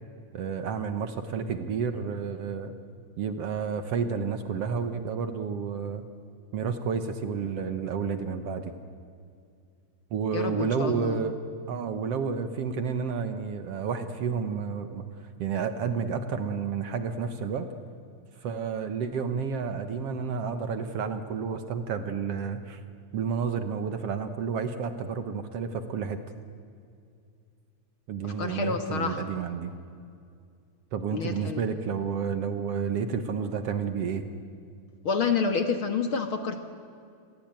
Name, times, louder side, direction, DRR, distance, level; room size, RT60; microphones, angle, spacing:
voice 1, 0.3-2.7 3.2-6.0 6.5-8.7 10.1-11.3 11.7-15.0 15.4-17.7 18.4-22.8 23.1-26.2 28.1-29.7 30.9-34.2, right 6 dB, 60° right, 9 dB, 2.0 m, -30 dB
voice 2, 10.3-11.2 28.2-29.2 31.1-31.6 35.0-36.6, left 5 dB, 50° left, 7 dB, 1.9 m, -28 dB
28.5 x 21.0 x 9.0 m, 2.3 s
omnidirectional pair, 3.4 m